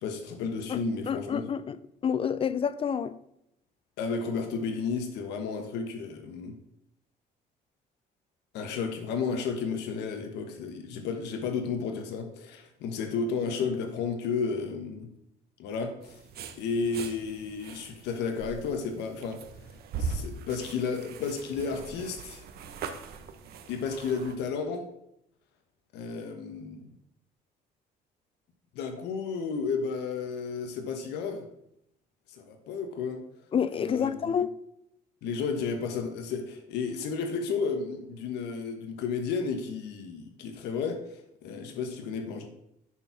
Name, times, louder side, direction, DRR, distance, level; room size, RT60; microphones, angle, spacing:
voice 1, 0.0-1.5 4.0-6.6 8.5-15.1 15.6-16.2 16.6-19.4 20.0-22.5 23.7-24.9 25.9-26.9 28.7-31.4 32.3-33.2 33.8-34.3 35.2-42.5, left 5 dB, 85° left, 1.2 m, -32 dB
voice 2, 0.7-1.8 2.0-3.2 33.5-34.6, left 7 dB, 35° left, 0.5 m, -28 dB
sound 1, 16.0-24.4, right 5 dB, 70° right, 1.1 m, -41 dB
9.8 x 4.6 x 5.7 m
cardioid pair, 110°, 17 cm